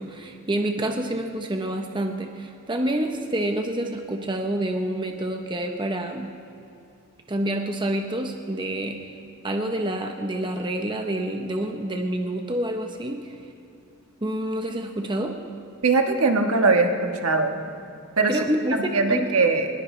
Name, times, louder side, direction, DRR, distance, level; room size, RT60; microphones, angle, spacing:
voice 1, 0.0-6.3 7.3-9.1 9.4-13.3 14.2-15.4 18.2-19.3, right 1 dB, 20° right, 4 dB, 0.9 m, -28 dB
voice 2, 15.8-17.6 18.2-18.4 18.9-19.7, right 3 dB, 75° right, 4 dB, 1.4 m, -21 dB
20.5 x 20.0 x 3.3 m, 2.6 s
head